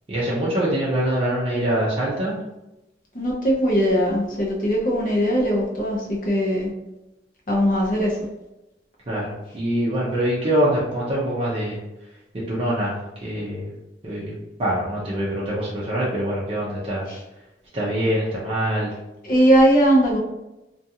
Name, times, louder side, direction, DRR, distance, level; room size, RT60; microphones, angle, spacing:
voice 1, 0.1-2.4 9.1-11.8 12.5-13.0 13.2-13.7 14.0-14.3 14.6-17.1 17.7-18.9, right 1 dB, 30° right, -7 dB, 0.5 m, -24 dB
voice 2, 3.1-6.7 7.5-8.2 17.1-17.2 19.2-20.2, equal, 45° left, -3 dB, 0.6 m, -20 dB
2.4 x 2.3 x 2.7 m, 0.95 s
head